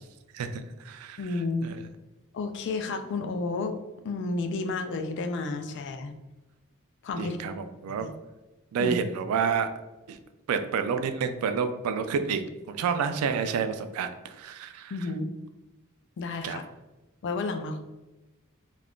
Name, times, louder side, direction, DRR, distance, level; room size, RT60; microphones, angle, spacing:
voice 1, 0.3-1.8 7.2-8.1 8.7-9.7 10.1-10.2 10.5-14.9 16.4-16.6, right 6 dB, 85° right, 9 dB, 0.3 m, -29 dB
voice 2, 1.2-1.7 2.3-3.7 4.0-6.1 7.0-7.4 8.0-8.1 8.8-9.0 14.9-15.3 16.2-16.6 17.2-17.8, left 3 dB, 55° left, 6 dB, 0.3 m, -31 dB
2.4 x 2.3 x 3.5 m, 1.1 s
head